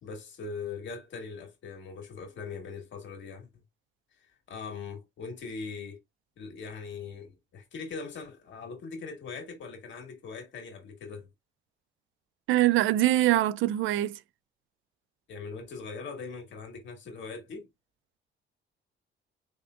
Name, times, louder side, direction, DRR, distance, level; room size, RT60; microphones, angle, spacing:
voice 1, 0.0-3.6 4.2-6.0 6.4-11.3 15.3-17.7, left 4 dB, 70° left, 2.0 m, -41 dB
voice 2, 12.5-14.2, right 15 dB, 85° right, 0.4 m, -23 dB
4.7 x 3.5 x 2.5 m
cardioid pair, 90°, 20 cm